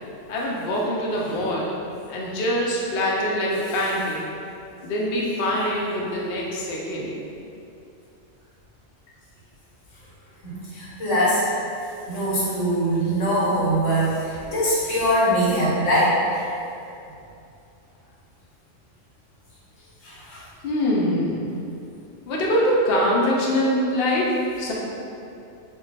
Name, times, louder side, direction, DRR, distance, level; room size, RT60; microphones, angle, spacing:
voice 1, 0.3-1.7 2.1-4.2 4.8-7.1 20.6-21.5 22.3-24.3 24.6-24.7, equal, 65° left, -4 dB, 0.7 m, -23 dB
voice 2, 10.4-11.5 12.1-16.2 20.0-20.4, equal, 90° left, -8 dB, 1.2 m, -22 dB
2.3 x 2.2 x 3.8 m, 2.6 s
omnidirectional pair, 1.3 m